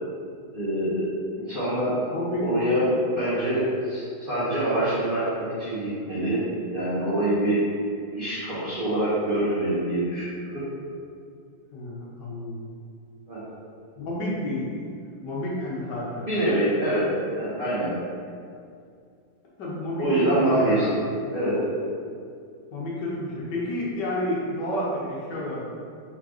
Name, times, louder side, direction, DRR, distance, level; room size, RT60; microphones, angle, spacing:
voice 1, 0.5-1.1 1.3-1.9 2.4-2.9 3.1-6.4 6.7-7.6 8.1-10.6 13.3-13.4 16.3-17.1 17.3-17.9 20.0-21.0 21.3-21.6, right 1 dB, 35° right, -12 dB, 1.1 m, -25 dB
voice 2, 2.1-2.5 11.7-12.6 14.0-14.7 15.2-16.3 19.6-21.0 22.7-25.6, left 1 dB, 70° left, -5 dB, 1.4 m, -30 dB
4.3 x 4.0 x 3.0 m, 2.3 s
omnidirectional pair, 2.1 m